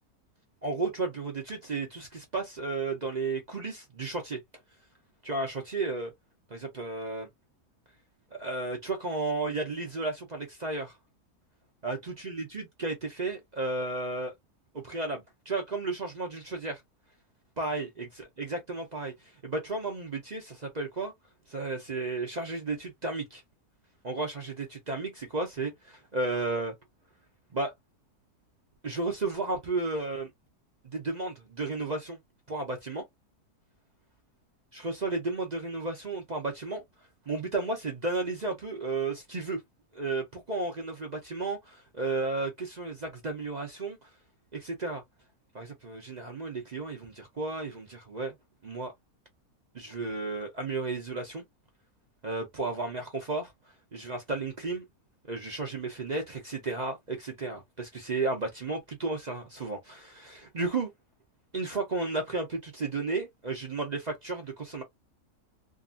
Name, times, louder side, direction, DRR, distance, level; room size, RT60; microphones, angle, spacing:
voice 1, 0.6-4.4 5.2-6.1 6.5-7.3 8.3-11.0 11.8-14.3 14.7-16.8 17.6-21.1 21.5-23.4 24.0-26.7 27.5-27.7 28.8-30.3 30.8-32.2 32.5-33.0 34.7-36.8 37.3-39.6 39.9-44.1 44.5-45.0 45.5-48.4 48.6-48.9 49.7-51.4 52.2-53.5 53.9-54.8 55.3-60.9 61.5-64.8, right 3 dB, 45° right, 0.5 m, -33 dB
2.8 x 2.5 x 2.4 m
omnidirectional pair, 1.6 m